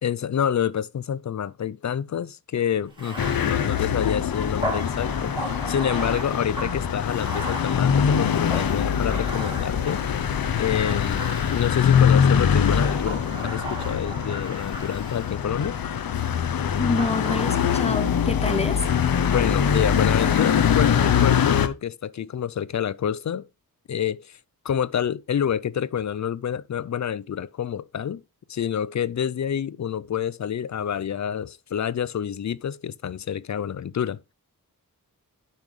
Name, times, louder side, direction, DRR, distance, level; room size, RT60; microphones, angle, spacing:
voice 1, 0.0-5.4 5.7-10.0 10.6-15.8 19.2-23.5 23.9-24.4 24.6-28.2 28.5-34.3, left 8 dB, 55° left, 0.5 m, -28 dB
Bathtub (filling or washing), 2.9-10.2 10.8-12.1 12.6-15.8 17.0-18.0, right 1 dB, 15° right, 2.7 m, -37 dB
sound 1, 3.2-21.7, left 8 dB, 80° left, 0.8 m, -23 dB
voice 2, 16.8-18.9, left 3 dB, 20° left, 0.8 m, -27 dB
10.5 x 5.8 x 3.2 m
wide cardioid pair, 120°, 35 cm